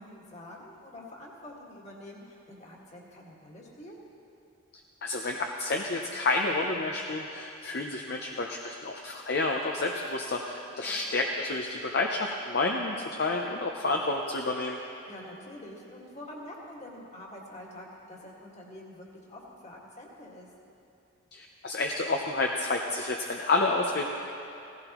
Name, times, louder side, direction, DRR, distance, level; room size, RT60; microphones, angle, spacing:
voice 1, 0.0-4.0 10.8-11.0 15.1-20.5, left 1 dB, 35° left, -3 dB, 1.8 m, -46 dB
voice 2, 5.0-14.8 21.3-24.1, left 2 dB, 50° left, 1 dB, 0.6 m, -29 dB
17.0 x 15.0 x 3.0 m, 2.7 s
head